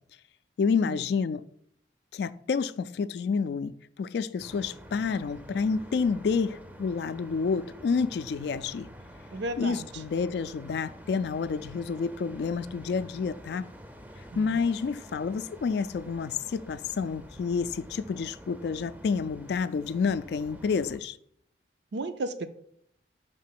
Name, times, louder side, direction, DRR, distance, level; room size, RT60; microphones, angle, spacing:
voice 1, 0.6-1.4 2.1-3.7 4.0-8.9 9.6-13.7 14.4-21.2, left 5 dB, 65° left, 0.3 m, -29 dB
sound 1, 4.4-21.0, equal, 10° right, 0.4 m, -48 dB
voice 2, 9.3-10.0 14.3-14.6 21.9-22.5, right 2 dB, 70° right, 0.5 m, -34 dB
5.2 x 3.7 x 5.8 m
head